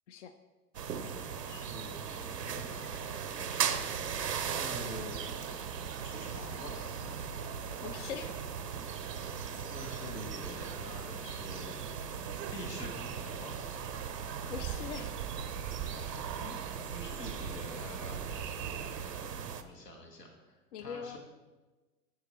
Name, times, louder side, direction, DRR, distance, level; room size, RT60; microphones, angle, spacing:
sound 1, 0.7-19.6, right 7 dB, 85° right, 0.7 m, -38 dB
voice 1, 1.4-3.8 4.4-5.2 6.0-6.9 9.7-11.7 12.5-13.5 16.3-16.6 16.9-19.1 19.6-21.2, left 1 dB, 80° left, 2 dB, 1.6 m, -47 dB
sound 2, 4.2-19.3, right 9 dB, 20° right, 0.5 m, -46 dB
voice 2, 7.8-8.4 14.5-15.1 15.6-15.7 20.7-21.2, left 7 dB, 50° left, 10 dB, 0.5 m, -42 dB
13.5 x 4.7 x 3.0 m, 1.2 s
figure-of-eight pair, 100°, 47 cm